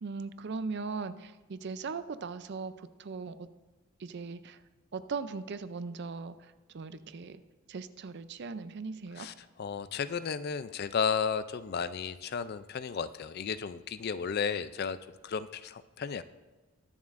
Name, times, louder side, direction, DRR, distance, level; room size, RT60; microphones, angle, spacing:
voice 1, 0.0-3.5 4.0-4.6 4.9-7.4 7.7-9.3, right 4 dB, 50° right, 13 dB, 0.4 m, -39 dB
voice 2, 9.2-15.0 15.2-16.2, left 6 dB, 45° left, 14 dB, 0.4 m, -33 dB
21.5 x 7.3 x 2.5 m, 1.3 s
head